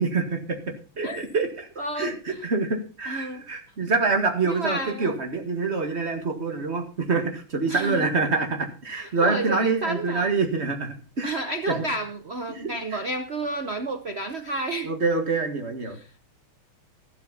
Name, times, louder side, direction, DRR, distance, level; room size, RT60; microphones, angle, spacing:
voice 1, 0.0-1.7 2.0-11.4 11.7-11.8 12.5-13.0 14.8-16.0, right 4 dB, 30° right, 4 dB, 2.0 m, -26 dB
voice 2, 1.8-2.4 3.1-3.5 4.4-5.1 7.7-8.1 8.9-10.3 11.2-14.9 15.9-16.1, right 2 dB, 60° right, 7 dB, 0.6 m, -31 dB
13.0 x 11.5 x 4.1 m, 0.34 s
omnidirectional pair, 2.4 m